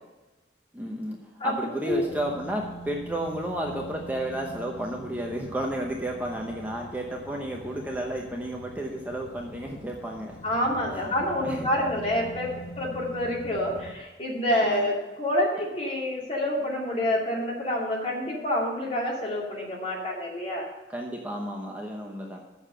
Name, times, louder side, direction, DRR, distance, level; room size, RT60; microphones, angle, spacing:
voice 1, 0.7-1.2 1.4-10.4 10.9-11.7 14.5-14.9 20.9-22.4, right 1 dB, 10° right, 0 dB, 0.9 m, -32 dB
sound 1, 1.9-14.0, equal, 75° left, 0.7 m, -43 dB
voice 2, 10.4-20.7, left 1 dB, 35° left, -3 dB, 2.4 m, -27 dB
7.1 x 6.7 x 7.5 m, 1.2 s
head